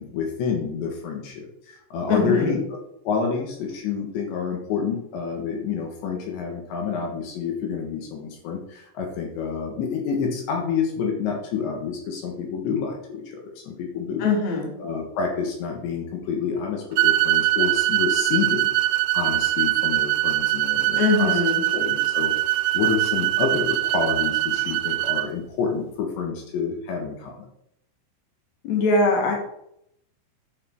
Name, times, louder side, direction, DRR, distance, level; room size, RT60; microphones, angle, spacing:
voice 1, 0.0-2.6 3.1-14.3 14.8-18.7 19.1-21.4 21.7-27.4, left 6 dB, 70° left, 1 dB, 3.5 m, -28 dB
voice 2, 2.1-2.6 14.2-14.8 21.0-21.6 28.6-29.4, left 3 dB, 50° left, 0 dB, 2.3 m, -21 dB
sound 1, 17.0-25.3, right 16 dB, 90° right, 3.2 m, -22 dB
10.5 x 5.9 x 4.6 m, 0.76 s
omnidirectional pair, 5.7 m